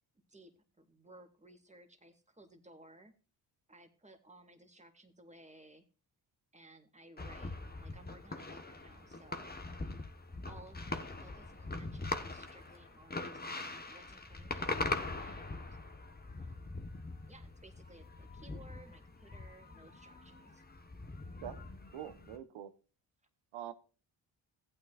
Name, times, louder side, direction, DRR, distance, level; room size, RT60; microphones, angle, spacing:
voice 1, 0.8-3.1 3.7-5.8 6.5-9.5 10.5-13.4 13.9-14.7 15.2-15.8 16.4-16.8 17.3-20.6, right 1 dB, 15° right, 2.2 m, -58 dB
sound 1, 7.2-22.4, left 2 dB, 20° left, 1.2 m, -42 dB
voice 2, 21.9-22.7 23.5-23.7, right 11 dB, 80° right, 1.1 m, -44 dB
15.5 x 8.7 x 2.5 m
supercardioid pair, 55°, 47 cm